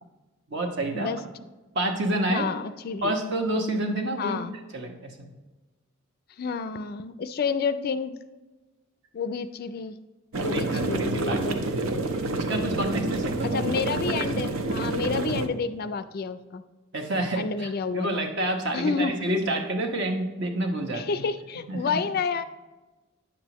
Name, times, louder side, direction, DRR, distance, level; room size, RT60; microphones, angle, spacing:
voice 1, 0.5-1.1 1.7-2.5 3.0-4.4 4.7-5.3 10.3-11.9 12.3-13.5 16.9-21.2 21.7-22.0, right 1 dB, 55° right, 3 dB, 1.1 m, -29 dB
voice 2, 2.3-3.1 4.2-4.5 6.4-8.2 9.1-10.0 10.4-11.6 13.4-16.6 17.4-18.2 18.7-19.4 20.9-22.4, left 5 dB, 45° left, 12 dB, 0.3 m, -30 dB
sound 1, 10.3-15.5, right 2 dB, 75° right, 0.7 m, -28 dB
9.7 x 7.4 x 3.0 m, 1.2 s
head